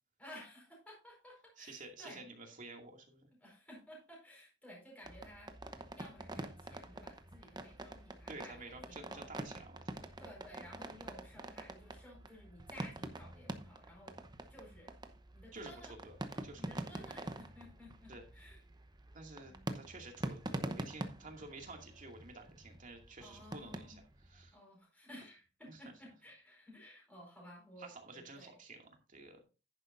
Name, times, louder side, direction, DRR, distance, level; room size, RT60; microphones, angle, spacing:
voice 1, 0.2-2.3 3.3-5.5 5.9-9.5 10.2-14.1 14.5-14.9 15.3-15.9 16.2-18.6 19.4-19.7 23.2-24.0 24.5-28.6, equal, 10° left, -3 dB, 4.7 m, -55 dB
voice 2, 1.6-3.3 8.3-10.0 15.5-16.2 16.4-16.6 17.0-17.1 18.1-18.2 19.1-24.6 25.7-25.8 27.8-29.4, right 2 dB, 45° right, 2 dB, 2.4 m, -51 dB
sound 1, 5.0-24.5, right 1 dB, 20° right, 0.8 m, -46 dB
10.5 x 9.7 x 2.6 m, 0.31 s
head